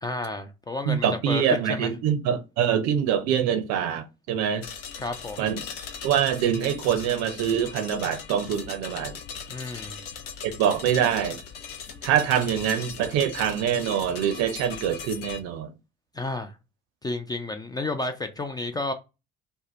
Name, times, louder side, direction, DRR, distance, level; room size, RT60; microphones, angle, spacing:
voice 1, 0.0-1.9 5.0-5.5 9.5-10.0 16.1-16.6 17.0-18.9, left 2 dB, 15° left, 0.3 m, -31 dB
voice 2, 0.9-4.7 5.4-5.7 6.0-9.2 10.4-11.4 12.0-15.7, right 9 dB, 60° right, 0.6 m, -25 dB
sound 1, 4.6-15.4, left 7 dB, 75° left, 0.5 m, -39 dB
2.7 x 2.1 x 3.0 m
figure-of-eight pair, 50°, 30 cm